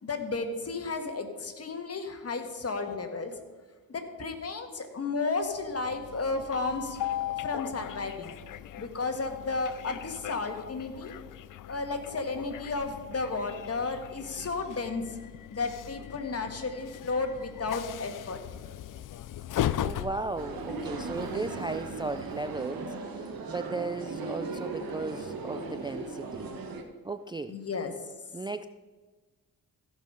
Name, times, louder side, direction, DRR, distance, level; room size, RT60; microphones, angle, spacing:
voice 1, 0.0-3.4 3.9-8.3 8.8-11.1 11.7-15.1 15.5-18.4 27.5-27.9, left 3 dB, 45° left, 6 dB, 1.7 m, -33 dB
Train, 5.5-22.8, left 12 dB, 65° left, 0.5 m, -39 dB
voice 2, 19.8-26.5 27.0-27.5 28.3-28.7, right 3 dB, 15° right, 10 dB, 0.3 m, -36 dB
sound 1, 20.4-26.8, right 3 dB, 80° right, 1.4 m, -37 dB
15.5 x 5.4 x 5.5 m, 1.3 s
cardioid pair, 75°, 35 cm